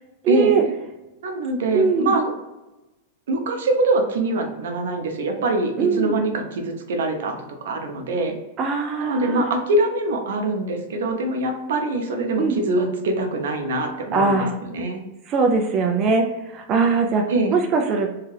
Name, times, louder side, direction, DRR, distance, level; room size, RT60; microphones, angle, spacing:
voice 1, 0.2-0.6 1.7-2.1 5.8-6.2 8.6-9.5 12.4-12.6 14.1-14.5 15.3-18.1, right 4 dB, 30° right, 3 dB, 0.3 m, -21 dB
voice 2, 1.2-2.3 3.3-7.4 7.6-8.3 9.0-15.0 17.3-17.6, right 2 dB, 80° right, 3 dB, 0.6 m, -23 dB
2.7 x 2.4 x 3.2 m, 1.0 s
supercardioid pair, 150°, 0 cm